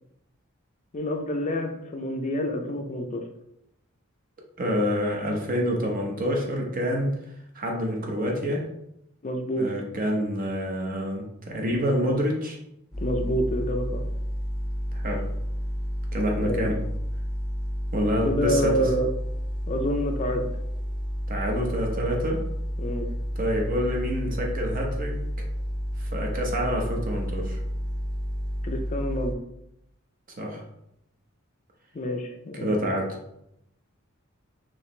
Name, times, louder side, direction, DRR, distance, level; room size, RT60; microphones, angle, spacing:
voice 1, 0.9-3.2 9.2-9.7 13.0-14.0 16.4-16.7 18.2-19.1 19.7-20.5 22.8-23.1 28.6-29.3 31.9-32.9, equal, 35° left, 4 dB, 0.4 m, -28 dB
voice 2, 4.6-7.2 7.5-8.6 9.6-12.6 14.9-15.2 16.1-16.8 17.9-18.9 21.3-22.4 23.3-25.2 26.0-27.6 30.4-30.6 32.6-33.2, equal, 45° right, 0 dB, 0.9 m, -27 dB
sound 1, 12.9-29.3, equal, 5° right, 0.7 m, -30 dB
4.8 x 3.0 x 3.2 m, 0.80 s
head